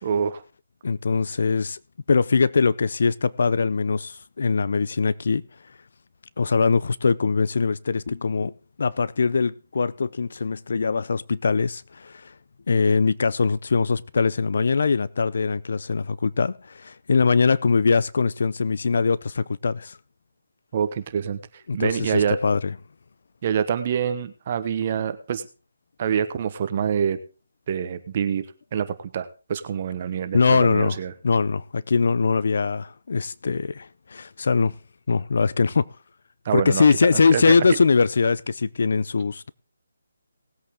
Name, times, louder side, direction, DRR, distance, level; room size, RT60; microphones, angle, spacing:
voice 1, 0.0-0.4 20.7-21.4 21.7-22.4 23.4-25.4 26.0-27.2 27.7-28.4 28.7-31.1 36.4-36.8 37.1-37.5, right 7 dB, 35° right, 1.1 m, -26 dB
voice 2, 0.8-1.8 2.1-5.4 6.4-8.5 8.8-12.3 12.7-20.0 21.7-22.7 30.3-31.0 31.2-34.7 35.1-35.8 36.5-39.5, left 4 dB, 60° left, 0.6 m, -22 dB
19.0 x 8.3 x 3.7 m
hypercardioid pair, 165°, 0 cm